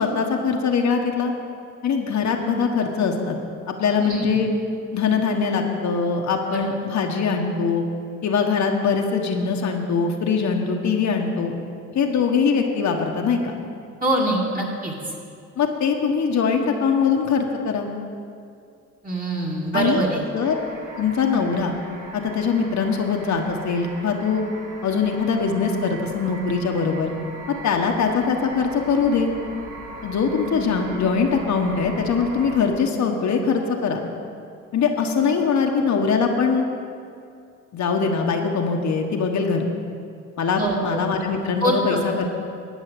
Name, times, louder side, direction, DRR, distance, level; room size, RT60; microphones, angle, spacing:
voice 1, 0.0-1.3 1.8-3.4 3.7-4.5 4.9-7.8 8.2-11.6 11.9-13.6 15.6-17.9 19.7-20.0 20.3-20.5 21.0-21.7 22.1-24.4 24.8-27.1 27.6-29.3 30.0-34.0 34.7-36.6 37.7-39.6 40.4-42.3, left 5 dB, 65° left, 2 dB, 1.3 m, -22 dB
voice 2, 4.0-4.3 6.5-6.7 14.0-14.9 19.0-20.2 40.5-40.7 41.6-42.0, right 1 dB, 30° right, -2 dB, 2.7 m, -24 dB
sound 1, 20.4-32.7, right 2 dB, 80° right, 1.5 m, -39 dB
11.5 x 5.5 x 8.6 m, 2.4 s
cardioid pair, 70°, 30 cm